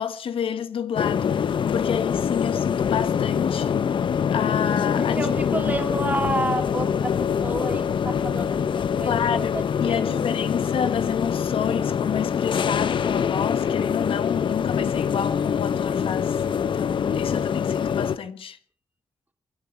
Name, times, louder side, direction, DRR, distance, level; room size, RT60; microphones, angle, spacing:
voice 1, 0.0-4.0 4.3-5.2 5.5-5.7 9.0-18.6, left 8 dB, 85° left, 1.2 m, -29 dB
sound 1, 0.9-18.2, left 7 dB, 65° left, 0.8 m, -24 dB
voice 2, 5.0-10.2, right 2 dB, 20° right, 2.6 m, -30 dB
29.0 x 10.5 x 4.4 m
wide cardioid pair, 135°, 9 cm